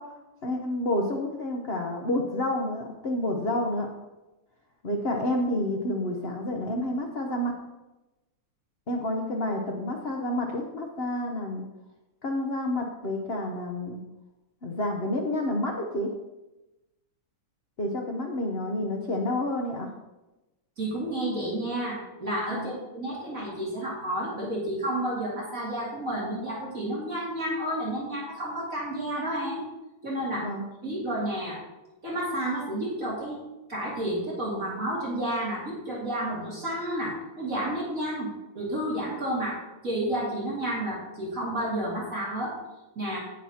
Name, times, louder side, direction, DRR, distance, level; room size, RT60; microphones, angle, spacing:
voice 1, 0.0-3.9 4.8-7.5 8.9-11.7 12.2-14.0 14.6-16.1 17.8-19.9 22.5-22.8 30.3-30.6, left 1 dB, 50° left, 1 dB, 0.7 m, -29 dB
voice 2, 20.8-29.6 30.0-30.5 30.8-31.6 32.0-33.4 33.7-38.3 38.5-42.5 43.0-43.2, right 1 dB, 40° right, -6 dB, 2.6 m, -31 dB
17.5 x 6.4 x 2.9 m, 1.0 s
omnidirectional pair, 2.3 m